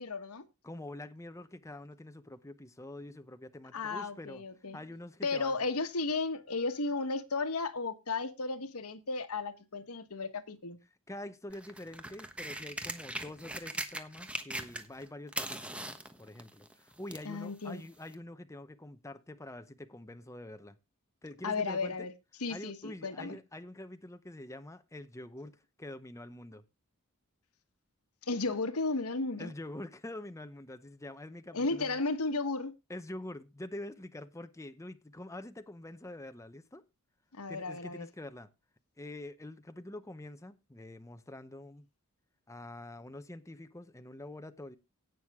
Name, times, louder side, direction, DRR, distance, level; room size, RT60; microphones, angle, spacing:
voice 1, 0.0-0.5 3.7-4.8 5.2-10.8 17.2-17.8 21.4-22.1 22.4-23.4 28.2-29.5 31.5-32.7 37.3-38.1, left 3 dB, 85° left, 1.3 m, -34 dB
voice 2, 0.6-4.4 4.7-5.6 11.1-15.8 16.2-20.8 21.2-22.1 22.5-26.6 29.4-32.0 32.9-36.8 37.5-38.5 39.0-41.9 42.5-44.8, left 1 dB, 15° left, 0.8 m, -46 dB
sound 1, 11.5-15.0 15.3-17.3 18.1-18.2, right 1 dB, 5° right, 1.2 m, -40 dB
17.0 x 6.4 x 3.6 m
head